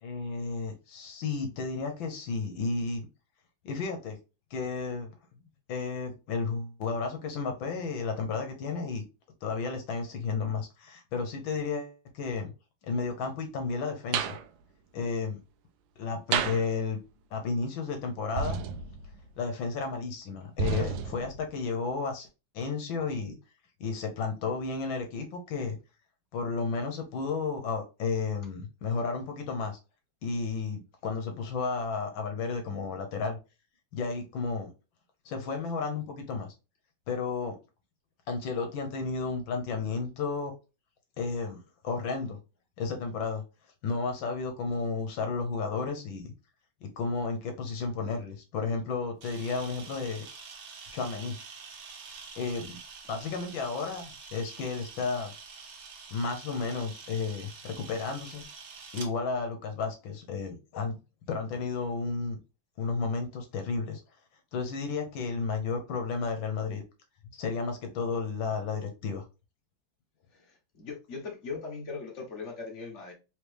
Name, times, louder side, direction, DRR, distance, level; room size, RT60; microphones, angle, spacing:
voice 1, 0.0-3.1 3.6-4.2 4.5-5.1 5.7-9.0 9.4-12.5 12.8-14.3 14.9-15.4 16.0-17.0 17.3-18.6 19.4-22.3 22.5-23.3 23.8-25.8 26.3-29.8 30.2-33.4 33.9-34.7 35.2-36.5 37.1-37.5 38.3-40.5 41.2-41.6 41.8-42.4 42.8-43.4 43.8-46.3 46.8-50.2 50.9-51.4 52.3-52.8 53.1-55.3 56.1-58.4 58.9-61.0 61.3-62.4 62.8-64.0 64.5-66.8 67.3-69.2, left 4 dB, 85° left, 1.6 m, -32 dB
sound 1, 14.1-14.4 16.3-16.7 18.4-19.4 20.6-21.5, right 6 dB, 85° right, 1.3 m, -31 dB
Camera, 49.2-59.1, right 5 dB, 65° right, 1.5 m, -47 dB
voice 2, 70.3-73.1, left 4 dB, 40° left, 1.5 m, -40 dB
3.9 x 3.2 x 3.3 m
omnidirectional pair, 2.1 m